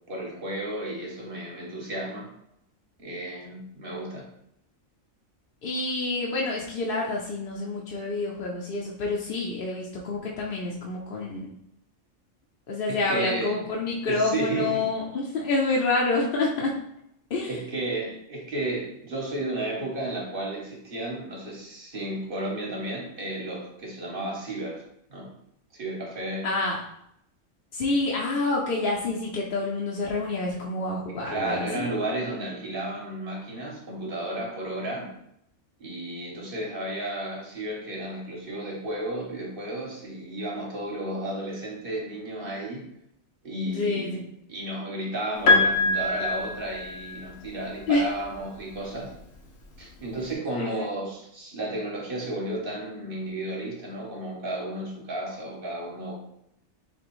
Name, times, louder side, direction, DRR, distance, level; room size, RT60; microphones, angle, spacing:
voice 1, 0.1-2.3 3.0-4.3 12.9-13.6 14.0-14.9 17.4-24.8 25.1-25.3 25.7-26.5 31.2-35.1 35.8-42.9 43.4-44.2 44.5-49.1 49.8-56.1, right 1 dB, 50° right, -1 dB, 1.0 m, -33 dB
voice 2, 5.6-11.6 12.7-16.8 17.3-17.5 26.4-26.8 27.7-31.9 43.7-44.2 47.9-48.0 50.6-50.9, left 3 dB, 55° left, -3 dB, 0.7 m, -28 dB
Piano, 45.5-47.5 48.7-48.8, left 3 dB, 80° left, 1.1 m, -23 dB
4.3 x 2.9 x 3.0 m, 0.75 s
omnidirectional pair, 1.4 m